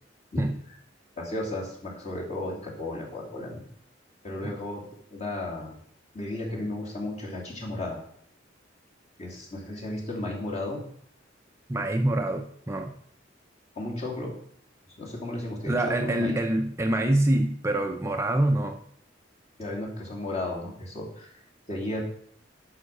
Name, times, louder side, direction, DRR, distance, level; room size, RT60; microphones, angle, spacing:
voice 1, 1.2-3.6 4.2-4.8 5.1-5.8 6.1-8.0 9.2-10.8 13.7-14.3 15.0-16.4 19.6-21.4 21.7-22.0, left 1 dB, 35° left, -3 dB, 2.9 m, -34 dB
voice 2, 11.7-12.9 15.7-18.8, right 1 dB, 15° right, 4 dB, 0.5 m, -25 dB
11.0 x 5.7 x 5.4 m, 0.63 s
head